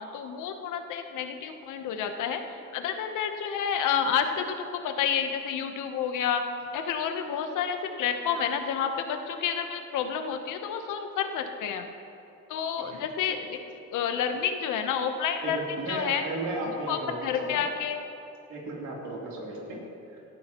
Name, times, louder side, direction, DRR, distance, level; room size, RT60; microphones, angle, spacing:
voice 1, 0.0-6.4 6.7-11.9 12.5-13.6 13.9-15.6 15.9-16.2 16.7-18.0, left 7 dB, 85° left, 6 dB, 1.0 m, -30 dB
voice 2, 15.4-17.6 18.5-19.8 20.1-20.2, right 2 dB, 75° right, -4 dB, 3.3 m, -35 dB
17.5 x 12.5 x 3.0 m, 2.7 s
cardioid pair, 90°, 30 cm